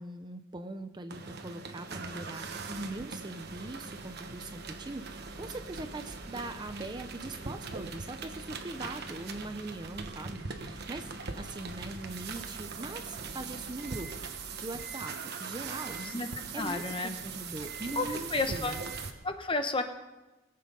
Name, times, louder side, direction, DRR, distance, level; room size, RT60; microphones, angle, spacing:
voice 1, 0.0-14.1 14.6-15.1 15.4-16.0 16.5-18.8, right 2 dB, 20° right, 8 dB, 0.6 m, -41 dB
sound 1, 1.1-19.1, right 4 dB, 50° right, 1.1 m, -41 dB
voice 2, 16.0-16.3 16.5-17.2 17.9-19.8, left 3 dB, 25° left, 7 dB, 0.9 m, -32 dB
21.0 x 7.7 x 5.4 m, 1.1 s
head